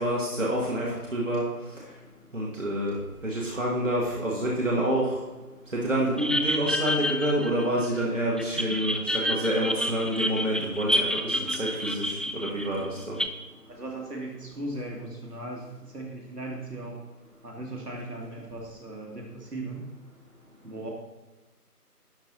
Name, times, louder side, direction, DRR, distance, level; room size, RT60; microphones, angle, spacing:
voice 1, 0.0-1.5 2.3-5.2 5.7-13.2, right 1 dB, 50° right, -3 dB, 1.5 m, -28 dB
sound 1, 6.2-8.0 8.4-13.3, equal, ahead, 0.3 m, -29 dB
voice 2, 13.7-17.0 17.4-19.9 20.6-20.9, right 2 dB, 75° right, 0 dB, 2.1 m, -37 dB
11.5 x 4.1 x 3.9 m, 1.2 s
figure-of-eight pair, 175°, 48 cm